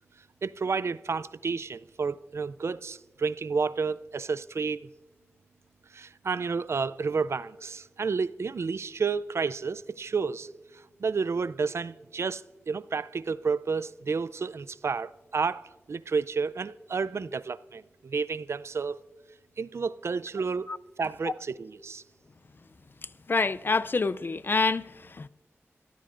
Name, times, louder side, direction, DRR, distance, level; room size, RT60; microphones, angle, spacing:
voice 1, 0.4-4.9 5.9-10.5 11.0-15.6 15.9-19.0 19.6-20.7 21.0-22.0, right 5 dB, 65° right, 0.4 m, -31 dB
voice 2, 23.3-25.3, left 4 dB, 45° left, 0.4 m, -27 dB
25.0 x 14.5 x 2.5 m
wide cardioid pair, 80°, 5 cm